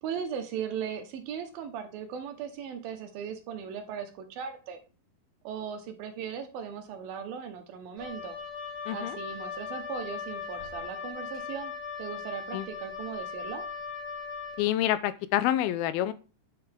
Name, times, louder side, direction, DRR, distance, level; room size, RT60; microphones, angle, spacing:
voice 1, 0.0-4.8 5.4-8.4 8.9-11.7 12.0-13.7, right 7 dB, 75° right, 6 dB, 2.7 m, -38 dB
Wind instrument woodwind instrument, 8.0-14.7, left 5 dB, 10° left, 3.3 m, -38 dB
voice 2, 8.9-9.2 12.5-12.7 14.6-16.1, left 12 dB, 80° left, 14 dB, 2.4 m, -27 dB
10.0 x 5.6 x 3.5 m, 0.34 s
omnidirectional pair, 4.4 m